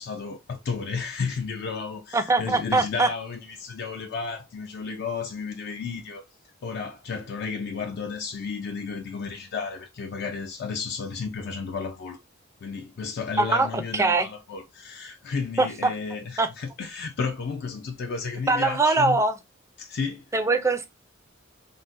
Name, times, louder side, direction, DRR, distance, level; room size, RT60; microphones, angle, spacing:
voice 1, 0.0-6.2 6.6-12.2 12.6-19.2 19.8-20.3, left 5 dB, 50° left, 0.4 m, -33 dB
voice 2, 2.1-3.1 13.4-14.3 15.6-15.9 16.4-16.5 18.5-19.4 20.3-20.9, right 3 dB, 15° right, 0.4 m, -22 dB
3.8 x 2.0 x 2.4 m
head